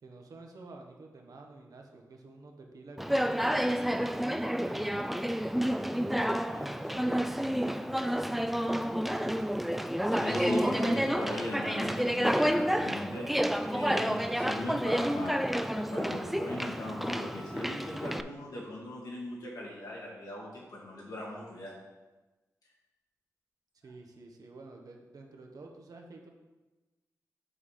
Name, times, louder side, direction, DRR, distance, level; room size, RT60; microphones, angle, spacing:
voice 1, 0.0-4.9 5.8-7.9 8.9-9.4 23.8-26.3, right 3 dB, 70° right, 2 dB, 1.1 m, -50 dB
Conversation, 3.0-18.2, equal, ahead, 0.3 m, -30 dB
voice 2, 10.1-21.7, left 1 dB, 75° left, -5 dB, 2.3 m, -38 dB
7.1 x 3.4 x 5.7 m, 1.2 s
cardioid pair, 60°, 6 cm